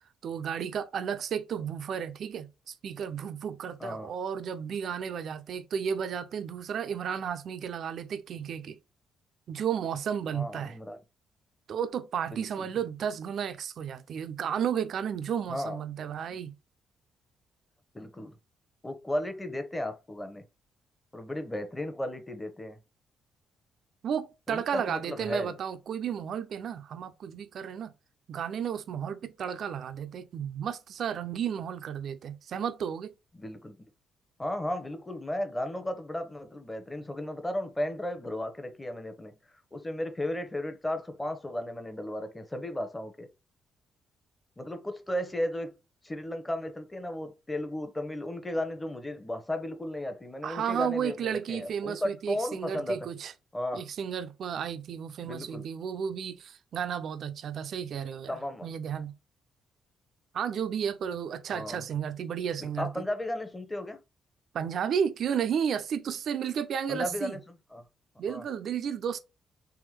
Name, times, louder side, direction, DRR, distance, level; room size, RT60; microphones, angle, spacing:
voice 1, 0.2-8.8 9.5-10.8 11.7-16.5 24.0-27.9 28.3-33.1 50.4-53.3 53.7-59.1 60.3-63.0 64.5-67.4 68.2-69.2, right 8 dB, 65° right, 0.4 m, -33 dB
voice 2, 3.8-4.1 10.3-11.0 12.3-12.7 15.5-15.8 17.9-18.3 18.8-20.4 21.1-22.8 24.5-25.6 33.3-33.8 34.4-39.3 39.7-43.3 44.6-45.7 46.0-53.0 53.5-53.8 55.2-55.6 58.3-58.7 61.5-61.8 62.6-64.0 66.9-67.4 67.7-67.8 68.3-68.4, left 1 dB, 15° left, 0.8 m, -34 dB
3.5 x 3.0 x 3.3 m
cardioid pair, 90°, 0 cm